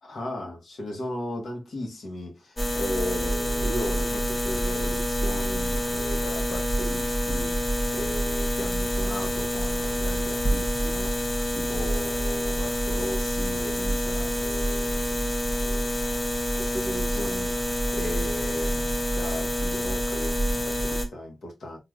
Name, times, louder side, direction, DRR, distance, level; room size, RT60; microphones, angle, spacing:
voice 1, 0.0-15.2 15.6-15.9 16.6-21.8, left 1 dB, 80° left, 1.0 m, -36 dB
sound 1, 2.6-21.1, equal, 25° left, 0.6 m, -27 dB
3.3 x 2.4 x 2.4 m
wide cardioid pair, 100°, 0 cm